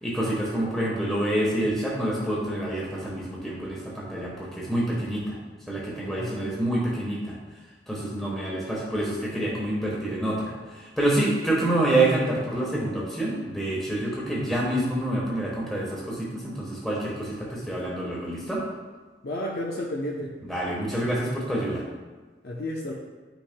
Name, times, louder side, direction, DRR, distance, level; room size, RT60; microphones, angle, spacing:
voice 1, 0.0-5.3 5.7-7.4 7.9-18.6 20.4-21.8, right 1 dB, ahead, -6 dB, 1.1 m, -27 dB
voice 2, 6.1-6.7 19.2-20.3 22.4-22.9, left 1 dB, 60° left, -2 dB, 0.7 m, -32 dB
9.9 x 6.1 x 2.2 m, 1.3 s
head